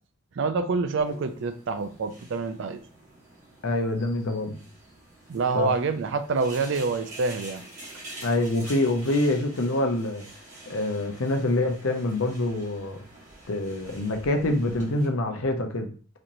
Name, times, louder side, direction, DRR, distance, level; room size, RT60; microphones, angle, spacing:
voice 1, 0.4-2.8 5.3-7.6, right 4 dB, 60° right, 10 dB, 0.4 m, -27 dB
sound 1, 1.0-15.1, right 1 dB, 35° right, 1.4 m, -47 dB
voice 2, 3.6-4.5 5.5-5.7 8.2-10.2 10.7-13.0 13.5-15.9, left 2 dB, 75° left, 4 dB, 0.6 m, -26 dB
4.2 x 3.0 x 2.5 m, 0.40 s
head